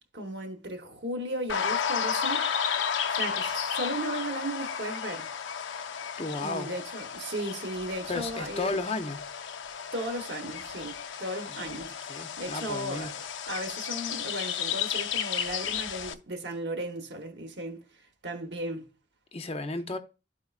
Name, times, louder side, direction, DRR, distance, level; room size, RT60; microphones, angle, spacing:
voice 1, 0.1-2.5 3.1-5.3 6.4-8.8 9.9-11.9 12.4-18.9, right 1 dB, 65° right, 1.0 m, -36 dB
sound 1, 1.5-16.1, left 7 dB, 75° left, 0.5 m, -33 dB
voice 2, 6.2-6.7 8.1-9.2 11.5-11.8 12.1-13.1 19.3-20.0, left 3 dB, 30° left, 0.6 m, -33 dB
12.5 x 4.4 x 2.4 m
head